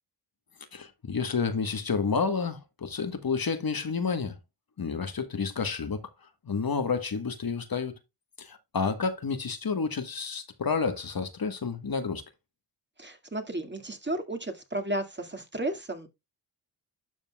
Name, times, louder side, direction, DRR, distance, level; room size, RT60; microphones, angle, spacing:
voice 1, 0.7-4.4 4.8-6.1 6.4-8.0 8.4-12.2, left 5 dB, 50° left, 1.5 m, -30 dB
voice 2, 13.0-16.1, right 1 dB, 25° right, 2.2 m, -33 dB
12.0 x 5.2 x 2.3 m
cardioid pair, 45°, 45 cm